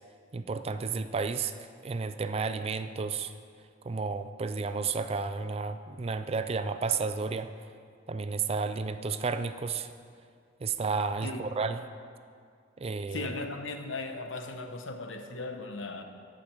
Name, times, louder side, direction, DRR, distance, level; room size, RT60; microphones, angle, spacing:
voice 1, 0.3-1.5 1.8-3.3 3.8-7.5 8.1-9.9 10.6-11.8 12.8-13.3, right 4 dB, 30° right, 10 dB, 0.4 m, -32 dB
voice 2, 11.2-11.5 13.1-16.0, left 3 dB, 80° left, 5 dB, 0.9 m, -37 dB
11.5 x 5.0 x 7.6 m, 2.2 s
head